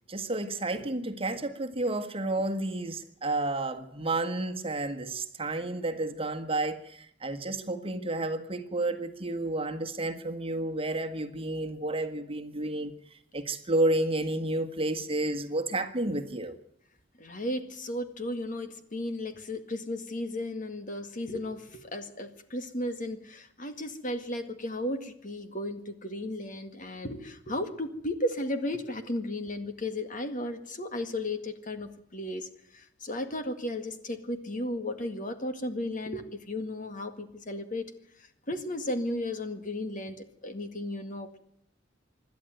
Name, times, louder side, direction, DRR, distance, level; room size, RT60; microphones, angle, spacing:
voice 1, 0.1-16.5, right 2 dB, 30° right, 1.7 m, -31 dB
voice 2, 17.2-32.5 32.7-37.8 38.5-40.2 40.4-41.4, left 1 dB, 45° left, 2.0 m, -34 dB
26.0 x 12.0 x 9.3 m
head